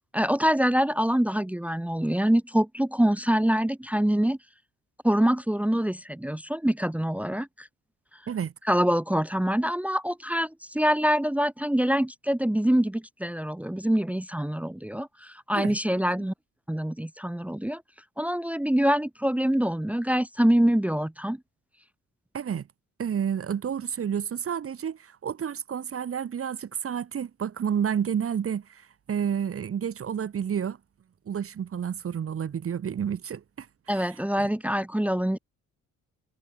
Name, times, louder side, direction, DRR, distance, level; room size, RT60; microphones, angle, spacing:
voice 1, 0.1-4.4 5.0-7.7 8.7-16.3 16.7-17.8 18.2-21.4 33.9-35.4, equal, 5° right, 0.9 m, -25 dB
voice 2, 22.3-22.7 23.0-30.8 31.3-34.5, right 8 dB, 50° right, 1.9 m, -30 dB
cardioid pair, 90°, 30 cm